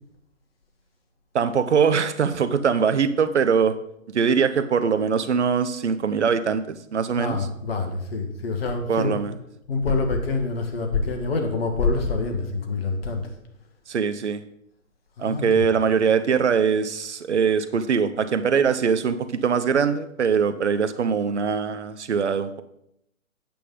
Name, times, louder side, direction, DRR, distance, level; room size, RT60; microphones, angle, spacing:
voice 1, 1.3-3.8 4.1-7.4 8.9-9.3 13.9-14.4 15.2-22.6, right 6 dB, 55° right, 12 dB, 0.7 m, -22 dB
voice 2, 7.2-9.3 9.7-13.2 15.2-15.6, left 3 dB, 45° left, 4 dB, 1.6 m, -26 dB
8.5 x 7.5 x 3.8 m, 0.76 s
figure-of-eight pair, 125°, 41 cm